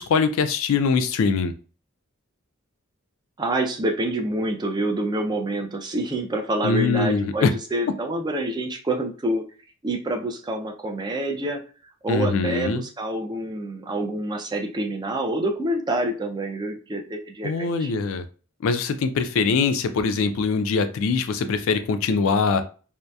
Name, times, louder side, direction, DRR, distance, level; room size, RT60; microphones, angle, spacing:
voice 1, 0.0-1.5 6.6-7.5 12.1-12.8 17.4-18.2 18.6-22.6, left 4 dB, 70° left, 0.3 m, -22 dB
voice 2, 3.4-9.4 9.8-11.6 12.0-17.9, right 1 dB, 20° right, 0.3 m, -27 dB
2.7 x 2.0 x 2.2 m
head